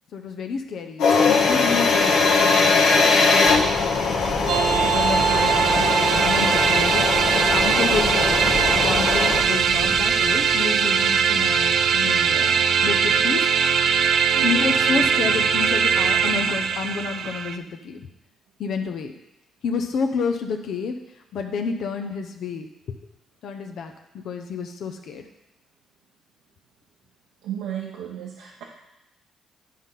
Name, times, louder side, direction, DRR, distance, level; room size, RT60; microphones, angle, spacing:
voice 1, 0.1-4.5 4.9-7.1 7.5-8.4 8.7-13.4 14.4-18.1 18.6-19.1 19.6-21.0 21.3-22.7 23.4-23.9 24.2-25.2, left 5 dB, 70° left, 4 dB, 0.7 m, -29 dB
sound 1, 1.0-9.4, left 4 dB, 85° left, 1.4 m, -21 dB
sound 2, 3.5-10.9, right 2 dB, 10° right, 1.3 m, -34 dB
sound 3, 4.5-17.6, right 7 dB, 65° right, 0.5 m, -21 dB
voice 2, 14.3-14.7 27.4-28.6, right 9 dB, 90° right, -2 dB, 0.9 m, -33 dB
10.0 x 3.7 x 5.7 m, 0.88 s
cardioid pair, 90°, 0 cm